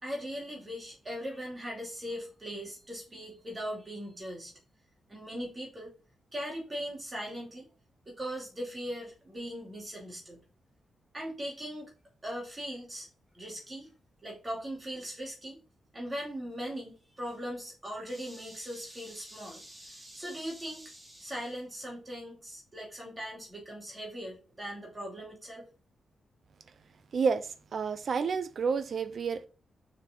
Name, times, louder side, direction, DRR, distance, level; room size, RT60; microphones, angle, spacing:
voice 1, 0.0-4.5 5.1-5.9 6.3-7.7 8.1-10.4 11.1-11.9 12.2-13.1 13.3-13.9 14.2-15.6 15.9-25.7, equal, 20° right, 2.6 m, -39 dB
voice 2, 27.1-29.5, right 5 dB, 45° right, 0.6 m, -30 dB
6.7 x 4.8 x 3.9 m
wide cardioid pair, 175°, 0 cm